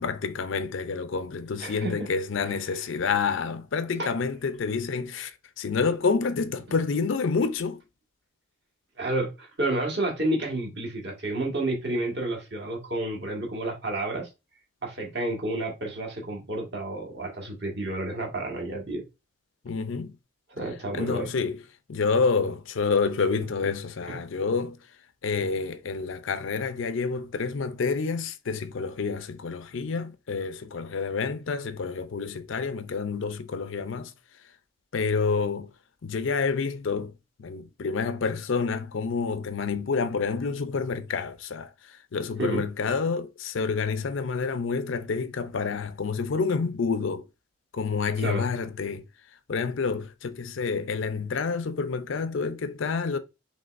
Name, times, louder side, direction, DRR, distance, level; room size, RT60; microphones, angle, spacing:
voice 1, 0.0-7.8 19.6-20.2 20.9-21.6 21.9-24.8 25.2-34.1 34.9-35.7 36.0-37.1 37.4-47.2 47.7-49.0 49.5-53.2, left 5 dB, 70° left, 0.5 m, -28 dB
voice 2, 1.6-2.1 2.4-2.5 4.0-4.1 9.0-14.3 14.8-19.0 20.5-21.3 24.1-24.2 42.4-42.6 48.2-48.5, right 1 dB, 55° right, 1.5 m, -30 dB
5.3 x 3.2 x 2.5 m
head